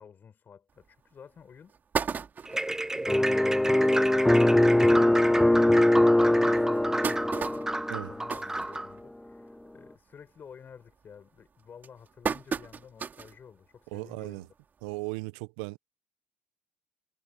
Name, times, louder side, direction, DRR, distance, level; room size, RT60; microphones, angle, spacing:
voice 1, 0.0-1.8 2.5-2.7 2.9-7.7 8.0-14.5, left 7 dB, 40° left, 6.0 m, -51 dB
sound 1, 0.8-0.9 1.4-1.5 1.7-2.8 3.3-3.4 3.7-3.8 4.1-4.3 5.0-5.1 5.6-5.7 6.5-9.3 9.7-10.0 10.4-10.8 11.4-13.4 13.8-13.9 15.1-15.2, right 6 dB, 35° right, 2.7 m, -34 dB
sound 2, 2.5-8.9, right 2 dB, 10° right, 1.1 m, -32 dB
sound 3, 3.1-8.3, left 1 dB, 5° left, 0.3 m, -22 dB
voice 2, 13.9-14.5 14.8-15.8, right 27 dB, 70° right, 1.2 m, -36 dB
hypercardioid pair, 60°, 5 cm